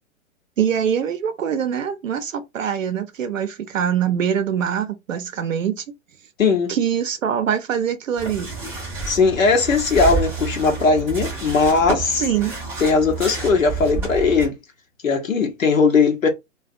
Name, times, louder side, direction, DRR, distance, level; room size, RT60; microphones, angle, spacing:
voice 1, 0.6-5.8 6.7-8.5 12.2-12.5, right 8 dB, 75° right, 0.5 m, -23 dB
voice 2, 6.4-6.7 9.1-12.2 12.8-14.6 15.0-16.3, left 4 dB, 85° left, 0.8 m, -18 dB
sound 1, 8.2-14.5, right 4 dB, 5° right, 0.4 m, -29 dB
2.3 x 2.2 x 2.6 m
figure-of-eight pair, 115°, 39 cm